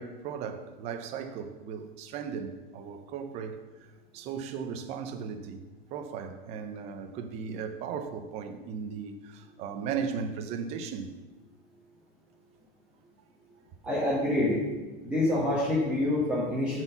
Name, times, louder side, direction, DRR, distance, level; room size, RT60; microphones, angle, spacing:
voice 1, 0.0-3.6 4.1-5.6 5.9-11.1, right 6 dB, 20° right, 0.6 m, -36 dB
voice 2, 13.8-14.6 15.0-16.8, left 1 dB, 5° right, 1.3 m, -26 dB
9.4 x 4.5 x 6.8 m
supercardioid pair, 170°, 29 cm